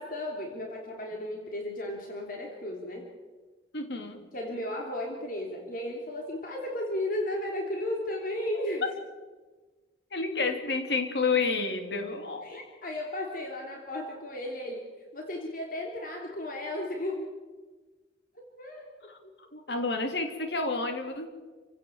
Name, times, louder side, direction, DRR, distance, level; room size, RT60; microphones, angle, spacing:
voice 1, 0.0-3.1 4.3-8.9 12.4-14.8 15.1-17.3 18.6-18.9, left 1 dB, 45° left, 1 dB, 3.3 m, -34 dB
voice 2, 3.7-4.2 10.1-12.5 19.1-19.2 19.5-21.3, left 4 dB, 65° left, 5 dB, 3.0 m, -30 dB
28.5 x 17.0 x 7.3 m, 1.3 s
head